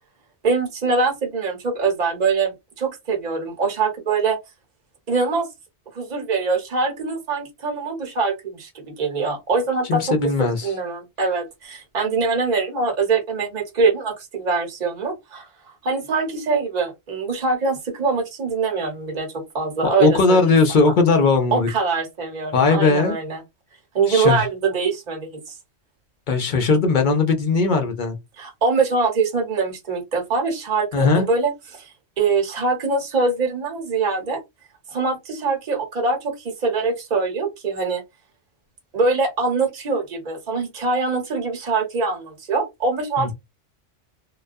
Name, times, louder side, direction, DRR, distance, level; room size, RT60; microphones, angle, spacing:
voice 1, 0.4-4.4 5.1-5.5 5.9-10.1 10.6-15.5 15.8-19.3 19.5-20.4 21.5-23.4 23.9-25.6 28.4-34.4 34.9-38.0 38.9-43.3, right 4 dB, 40° right, 0.9 m, -23 dB
voice 2, 9.9-10.7 20.0-21.7 22.5-23.2 24.1-24.4 26.3-28.2 30.9-31.2 43.2-43.3, left 4 dB, 55° left, 0.6 m, -18 dB
2.2 x 2.2 x 2.5 m
omnidirectional pair, 1.2 m